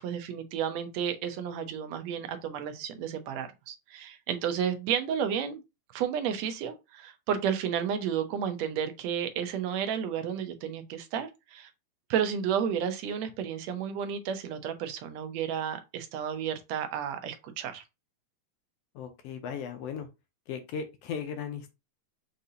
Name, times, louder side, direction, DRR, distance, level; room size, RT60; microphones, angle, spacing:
voice 1, 0.0-5.6 5.9-11.7 12.1-17.8, right 8 dB, 75° right, 1.8 m, -32 dB
voice 2, 18.9-20.1 20.5-21.7, left 7 dB, 75° left, 1.5 m, -37 dB
6.5 x 2.7 x 2.7 m
omnidirectional pair, 3.3 m